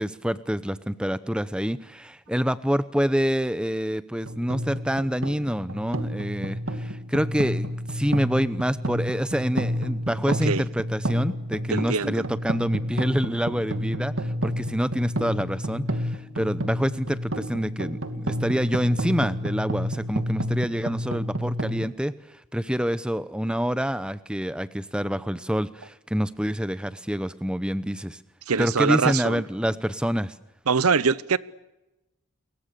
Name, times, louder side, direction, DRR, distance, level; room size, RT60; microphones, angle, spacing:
voice 1, 0.0-22.1 22.5-28.2 28.6-30.3, equal, 5° right, 0.8 m, -27 dB
sound 1, 4.2-21.8, equal, 65° right, 2.2 m, -30 dB
voice 2, 10.2-10.6 11.7-12.3 28.5-29.4 30.7-31.4, right 5 dB, 90° right, 0.9 m, -23 dB
30.0 x 23.0 x 6.9 m
head